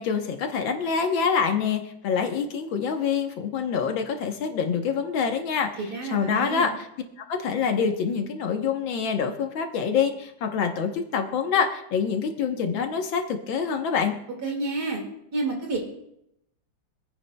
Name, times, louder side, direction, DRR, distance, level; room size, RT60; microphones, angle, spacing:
voice 1, 0.0-5.7 6.0-6.9 7.3-14.2, left 6 dB, 80° left, 5 dB, 1.9 m, -26 dB
voice 2, 5.8-6.7 14.4-15.0 15.3-15.8, right 3 dB, 55° right, 1 dB, 2.7 m, -29 dB
25.0 x 9.5 x 2.3 m, 0.79 s
omnidirectional pair, 2.1 m